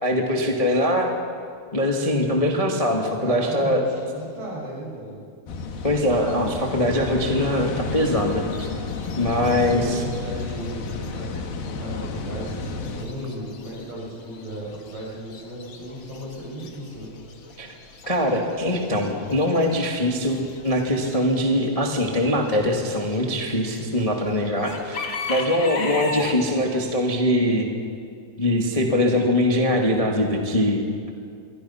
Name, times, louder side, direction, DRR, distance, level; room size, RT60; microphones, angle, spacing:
voice 1, 0.0-1.1 1.7-3.8 5.8-8.7 9.2-10.0 17.6-17.7 18.0-27.7 28.4-31.1, left 1 dB, 25° left, 1 dB, 0.7 m, -22 dB
voice 2, 3.2-5.2 9.3-17.1, right 1 dB, 70° right, -4 dB, 8.6 m, -35 dB
sound 1, 5.5-13.1, left 4 dB, 70° left, 3.4 m, -31 dB
Chicken rooster / Bird, 7.7-26.9, left 3 dB, 45° left, 1.7 m, -39 dB
27.5 x 22.5 x 5.8 m, 2.3 s
omnidirectional pair, 4.5 m